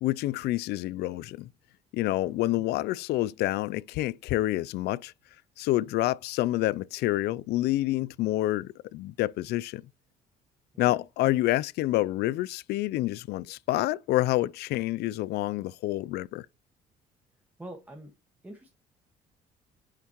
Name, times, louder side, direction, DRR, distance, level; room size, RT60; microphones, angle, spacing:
voice 1, 0.0-1.5 1.9-5.1 5.6-9.8 10.8-16.5, left 16 dB, 75° left, 0.4 m, -28 dB
voice 2, 2.2-2.6 10.7-11.0 17.6-18.1 18.4-18.7, right 1 dB, 10° right, 1.6 m, -45 dB
10.5 x 5.8 x 3.0 m
cardioid pair, 110°, 17 cm